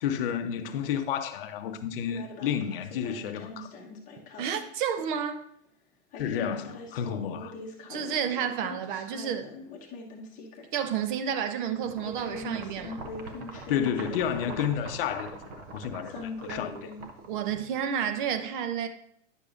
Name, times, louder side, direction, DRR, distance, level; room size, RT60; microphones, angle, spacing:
voice 1, 0.0-3.7 6.1-7.5 13.7-16.9, left 8 dB, 45° left, 0.8 m, -31 dB
sound 1, 2.1-4.6 6.1-10.7 11.0-11.1 12.0-14.8 16.1-17.0, left 3 dB, 20° left, 0.9 m, -42 dB
voice 2, 4.4-5.5 7.9-9.5 10.7-13.0 17.3-18.9, right 8 dB, 40° right, 0.7 m, -30 dB
sound 2, 11.8-17.9, right 3 dB, 15° right, 0.3 m, -43 dB
9.9 x 6.6 x 2.5 m
hypercardioid pair, 135°, 38 cm